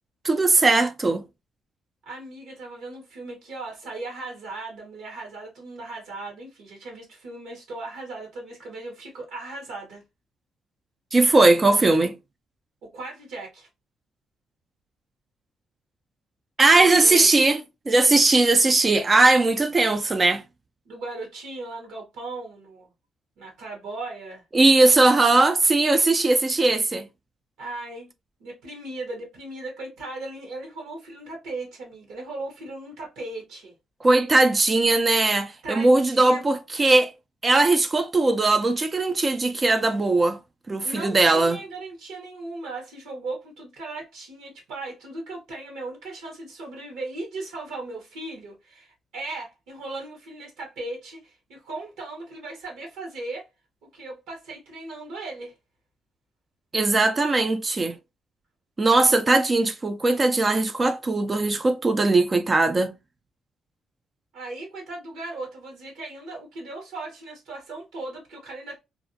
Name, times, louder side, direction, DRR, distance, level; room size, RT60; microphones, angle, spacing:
voice 1, 0.2-1.2 11.1-12.1 16.6-20.4 24.5-27.0 34.0-37.1 37.4-40.4 40.7-41.6 56.7-58.0 58.8-62.9, right 2 dB, 30° right, 0.3 m, -19 dB
voice 2, 2.0-10.0 12.8-13.7 16.8-17.3 20.8-22.9 23.4-24.4 27.6-28.1 28.4-33.7 35.6-36.4 40.8-53.5 53.9-55.5 64.3-68.8, right 2 dB, 85° right, 1.0 m, -37 dB
2.5 x 2.0 x 2.6 m
cardioid pair, 90°, 0 cm